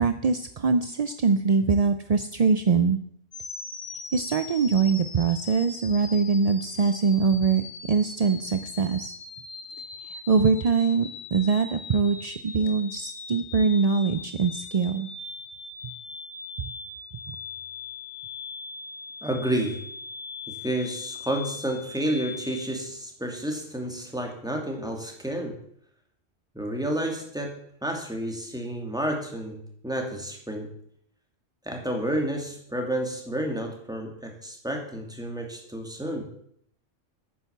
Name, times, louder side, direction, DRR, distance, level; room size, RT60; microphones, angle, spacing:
voice 1, 0.0-3.0 4.1-9.1 10.3-15.1, right 5 dB, 45° right, 9 dB, 0.5 m, -23 dB
sound 1, 3.3-22.7, left 4 dB, 75° left, 1.9 m, -41 dB
voice 2, 19.2-19.8 20.5-25.6 26.5-30.7 31.7-36.3, right 1 dB, 5° right, 2 dB, 2.4 m, -30 dB
10.5 x 9.2 x 7.1 m, 0.68 s
omnidirectional pair, 1.3 m